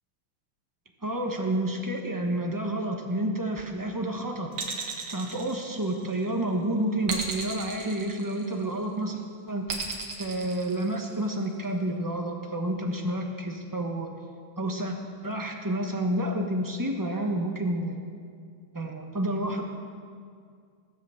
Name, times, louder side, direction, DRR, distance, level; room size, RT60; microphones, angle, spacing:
voice 1, 1.0-4.5 5.1-14.1 14.6-14.9 15.2-18.1 18.7-19.6, right 1 dB, 20° right, 2 dB, 0.5 m, -30 dB
sound 1, 4.5-6.2 7.1-8.7 9.7-11.3, right 4 dB, 75° right, 2.4 m, -35 dB
17.5 x 7.5 x 6.9 m, 2.2 s
omnidirectional pair, 2.3 m